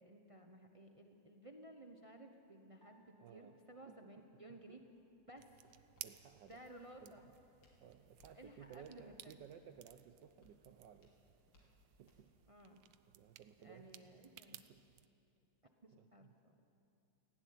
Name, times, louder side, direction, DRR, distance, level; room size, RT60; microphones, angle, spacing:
voice 1, 0.0-4.8 5.3-5.5 6.5-7.3 8.3-9.3 12.5-12.8 13.6-14.6 15.6-16.5, right 1 dB, 35° right, 4 dB, 0.5 m, -57 dB
Piano, 2.8-5.3, equal, 5° left, 3.9 m, -74 dB
voice 2, 3.2-3.6 3.9-4.8 6.0-6.7 7.0-7.3 7.8-11.1 11.6-12.3 13.1-14.2 14.5-14.9 15.9-16.3, right 8 dB, 70° right, 7 dB, 1.2 m, -59 dB
Walk footsteps, 4.3-12.3, left 1 dB, 90° left, 3.8 m, -73 dB
sound 1, 5.4-15.1, right 13 dB, 85° right, 1.6 m, -59 dB
17.5 x 16.0 x 9.5 m, 2.7 s
omnidirectional pair, 2.4 m